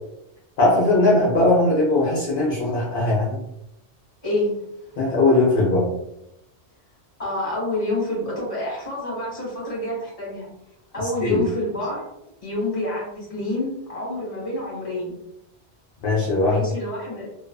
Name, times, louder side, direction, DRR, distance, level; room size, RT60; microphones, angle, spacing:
voice 1, 0.6-3.4 5.0-5.9 11.2-11.4 16.0-16.6, left 2 dB, 55° left, -6 dB, 0.8 m, -19 dB
voice 2, 4.2-4.6 4.8-5.0 7.2-10.5 10.9-12.1 12.4-15.2 16.5-17.3, left 1 dB, 30° left, -7 dB, 1.3 m, -28 dB
2.4 x 2.3 x 2.3 m, 0.85 s
omnidirectional pair, 1.2 m